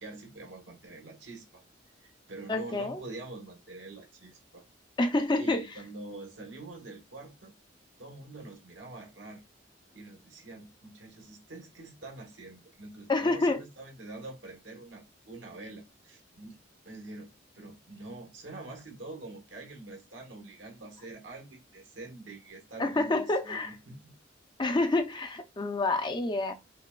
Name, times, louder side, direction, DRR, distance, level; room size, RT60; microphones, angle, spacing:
voice 1, 0.0-1.6 2.0-4.6 5.4-7.5 8.0-9.4 9.9-16.6 16.8-24.1, right 2 dB, 85° right, 1.3 m, -45 dB
voice 2, 2.5-3.0 5.0-5.6 13.1-13.6 22.8-23.7 24.6-26.5, left 2 dB, 25° left, 0.4 m, -28 dB
5.4 x 2.2 x 2.3 m
head